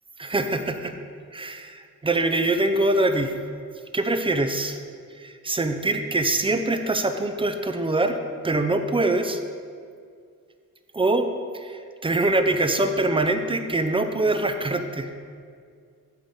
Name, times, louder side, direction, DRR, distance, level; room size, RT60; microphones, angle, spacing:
voice 1, 0.2-0.9 1.3-3.4 3.9-4.8 5.2-8.2 8.4-9.4 10.9-11.3 11.5-15.1, right 2 dB, 15° right, 7 dB, 0.5 m, -24 dB
9.0 x 3.8 x 6.9 m, 2.2 s
wide cardioid pair, 110°, 34 cm